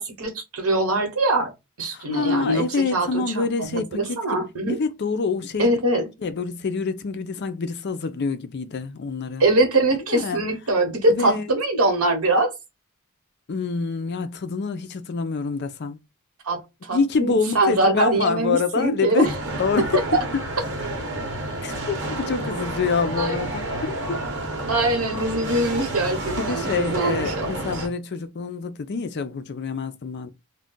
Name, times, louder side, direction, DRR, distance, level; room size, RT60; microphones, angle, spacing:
voice 1, 0.0-1.5 1.8-2.7 2.9-3.1 3.3-3.4 3.7-4.8 5.6-6.1 9.4-12.5 16.4-19.3 20.1-20.2 23.2-23.4 24.7-27.8, right 2 dB, 75° right, 1.0 m, -22 dB
voice 2, 1.9-5.7 6.2-9.4 10.1-10.5 11.1-11.5 13.5-16.0 16.9-20.0 20.3-20.4 21.6-24.2 26.4-30.3, left 4 dB, 50° left, 0.4 m, -26 dB
sound 1, 19.2-27.9, right 1 dB, 55° right, 1.0 m, -30 dB
2.4 x 2.2 x 3.7 m
head